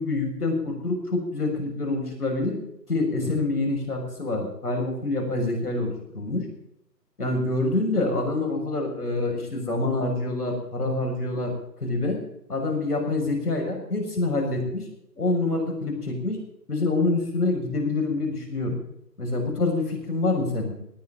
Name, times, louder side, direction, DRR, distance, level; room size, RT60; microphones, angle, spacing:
voice 1, 0.0-2.6 2.9-6.4 7.2-11.5 11.8-12.2 12.5-14.8 15.2-16.4 16.7-18.8 19.2-20.7, left 2 dB, 65° left, 1 dB, 6.4 m, -26 dB
19.0 x 7.3 x 9.1 m, 0.77 s
figure-of-eight pair, 175°, 50 cm